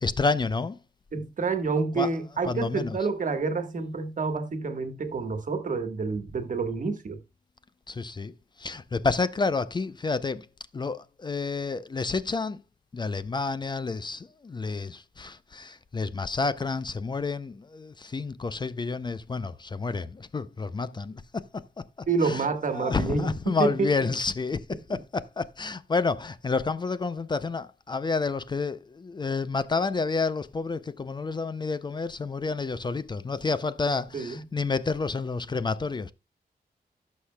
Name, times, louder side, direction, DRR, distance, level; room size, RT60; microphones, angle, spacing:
voice 1, 0.0-0.8 2.0-2.1 2.4-3.0 7.9-10.5 10.7-12.6 12.9-21.5 22.2-36.1, left 4 dB, 30° left, 0.4 m, -29 dB
voice 2, 1.1-7.2 22.1-23.9 24.9-25.0 34.1-34.4, right 4 dB, 55° right, 1.4 m, -28 dB
17.0 x 6.5 x 2.2 m
wide cardioid pair, 155°, 16 cm